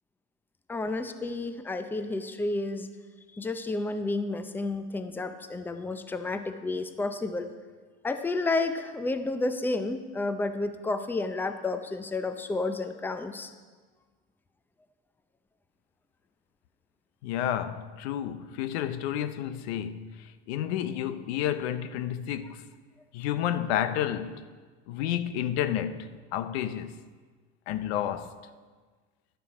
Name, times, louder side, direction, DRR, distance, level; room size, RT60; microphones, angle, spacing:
voice 1, 0.7-2.9 3.4-7.5 8.0-13.5, left 2 dB, 5° left, 0.5 m, -31 dB
voice 2, 17.2-22.7 23.1-24.4 24.9-26.9 27.7-28.4, left 10 dB, 85° left, 0.6 m, -31 dB
11.5 x 7.1 x 4.9 m
supercardioid pair, 110°, 31 cm